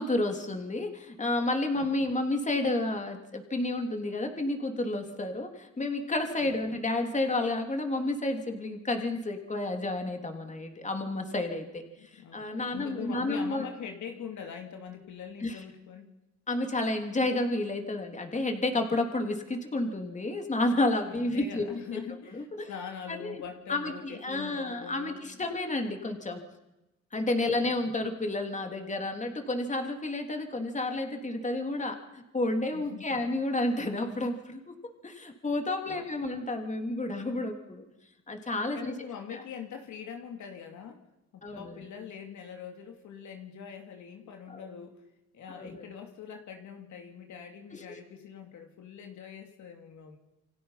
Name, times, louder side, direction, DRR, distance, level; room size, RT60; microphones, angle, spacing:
voice 1, 0.0-13.7 15.4-15.6 16.5-22.0 22.3-22.7 23.1-23.4 23.7-26.4 27.1-34.7 35.0-37.8 38.3-38.9 39.3-39.4 41.4-41.8 44.5-44.6 45.5-45.8 47.7-48.0, left 2 dB, 25° left, 4 dB, 3.1 m, -31 dB
voice 2, 1.8-2.2 6.4-6.8 12.0-12.5 12.7-16.1 21.1-25.2 27.5-27.9 32.7-33.2 35.9-36.3 38.7-41.0 41.3-45.0 45.3-50.2, left 7 dB, 70° left, 4 dB, 2.9 m, -43 dB
28.5 x 24.0 x 5.7 m, 1.0 s
cardioid pair, 90°, 30 cm